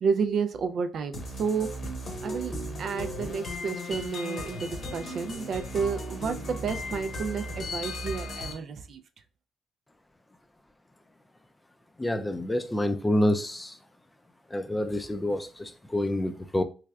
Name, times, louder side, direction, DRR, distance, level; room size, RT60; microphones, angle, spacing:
voice 1, 0.0-1.7 2.2-9.0, right 5 dB, 60° right, 0.4 m, -31 dB
sound 1, 1.1-8.5, left 1 dB, 50° left, 0.9 m, -36 dB
voice 2, 12.0-13.7 14.5-16.6, left 1 dB, 15° left, 0.4 m, -27 dB
3.3 x 3.3 x 2.3 m
cardioid pair, 90°, 0 cm